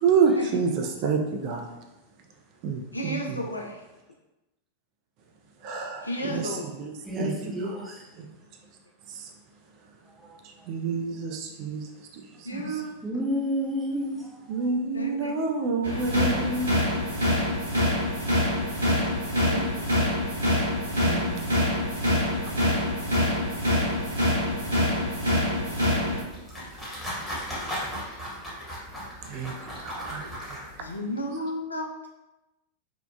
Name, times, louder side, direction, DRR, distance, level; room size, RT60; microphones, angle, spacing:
voice 1, 0.0-1.7 2.6-3.4 5.6-7.3 8.2-8.3 9.1-9.3 10.7-11.9 12.4-12.5 14.5-16.7 21.1-21.4 29.3-29.5 29.8-30.6, right 5 dB, 40° right, 2 dB, 0.3 m, -28 dB
voice 2, 2.9-3.9 6.0-6.7 12.4-13.0 14.9-15.4 19.3-19.6 30.8-32.1, equal, 80° left, 0 dB, 0.3 m, -33 dB
voice 3, 7.1-8.0 10.2-10.4 12.5-14.4, equal, 10° right, -4 dB, 0.6 m, -31 dB
sound 1, 15.8-26.2, left 1 dB, 75° right, 0.7 m, -25 dB
sound 2, 26.1-31.0, equal, 10° left, 1.0 m, -37 dB
2.7 x 2.1 x 2.2 m, 0.98 s
figure-of-eight pair, 90°, 0 cm